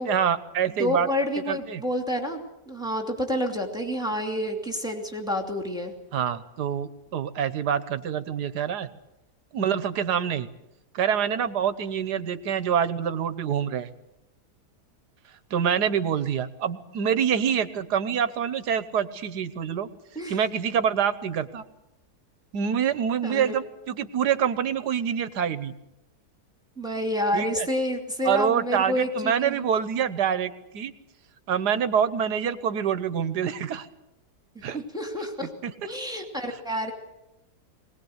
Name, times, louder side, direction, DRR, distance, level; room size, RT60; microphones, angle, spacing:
voice 1, 0.1-1.1 1.5-1.8 6.1-8.9 9.5-10.5 10.9-13.9 15.5-19.9 20.3-21.6 22.5-25.7 27.3-27.7 28.2-30.9 31.5-33.9 34.6-34.8 35.6-35.9, right 8 dB, 90° right, 13 dB, 1.6 m, -26 dB
voice 2, 0.8-5.9 20.1-20.4 23.2-23.6 26.8-29.6 34.5-35.5 35.8-36.9, left 1 dB, ahead, 2 dB, 2.7 m, -29 dB
21.5 x 19.0 x 8.0 m, 0.92 s
omnidirectional pair, 1.7 m